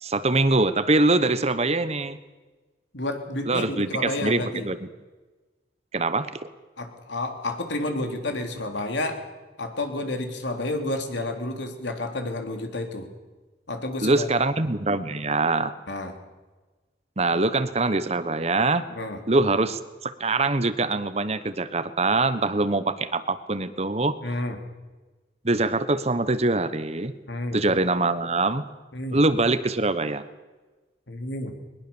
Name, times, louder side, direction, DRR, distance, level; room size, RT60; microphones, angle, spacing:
voice 1, 0.0-2.2 3.5-4.8 5.9-6.5 14.0-15.7 17.2-18.9 19.3-24.2 25.4-27.1 27.5-28.6 29.1-30.2, right 2 dB, 35° right, 12 dB, 1.1 m, -23 dB
voice 2, 2.9-4.7 6.8-9.2 9.6-13.1 13.7-14.3 15.9-16.1 18.9-19.2 24.2-24.6 27.3-27.6 28.9-29.2 31.1-31.5, left 2 dB, 75° left, 5 dB, 3.4 m, -30 dB
21.5 x 20.5 x 7.1 m, 1.2 s
head